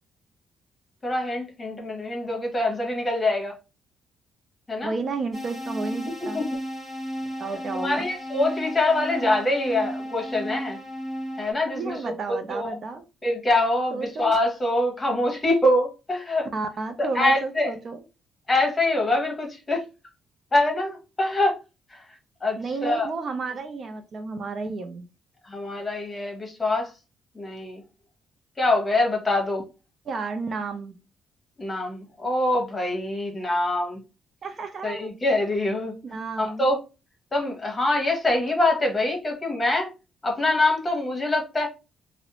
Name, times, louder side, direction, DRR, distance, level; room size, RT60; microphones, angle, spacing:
voice 1, 1.0-3.5 4.7-4.9 6.3-6.6 7.8-10.8 11.4-12.1 12.5-12.8 13.2-16.5 17.0-17.7 18.5-19.8 20.5-21.6 21.9-22.0 22.4-23.1 25.4-26.9 27.3-27.8 28.6-29.6 31.6-34.0 34.8-35.9 36.4-36.8 37.3-39.9 40.2-41.7, left 2 dB, 25° left, 1.0 m, -24 dB
voice 2, 4.8-6.4 7.4-8.0 11.7-13.0 13.9-14.3 16.5-18.0 22.6-25.1 30.1-30.9 34.4-35.1 36.0-36.7, right 4 dB, 50° right, 0.4 m, -32 dB
sound 1, 5.3-11.5, equal, 25° right, 1.4 m, -34 dB
2.4 x 2.0 x 2.8 m
cardioid pair, 90°, 0 cm